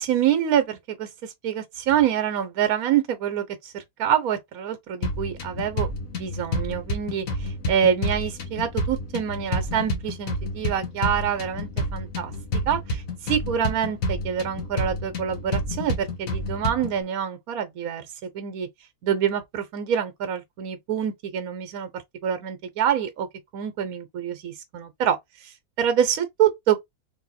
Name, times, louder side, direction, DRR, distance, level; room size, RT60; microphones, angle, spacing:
voice 1, 0.0-12.3 12.7-18.1 18.3-18.7 19.0-21.9 22.2-23.3 23.5-26.8, right 9 dB, 75° right, 1.2 m, -26 dB
sound 1, 5.0-17.0, left 1 dB, 70° left, 1.5 m, -30 dB
3.4 x 2.7 x 4.0 m
omnidirectional pair, 1.5 m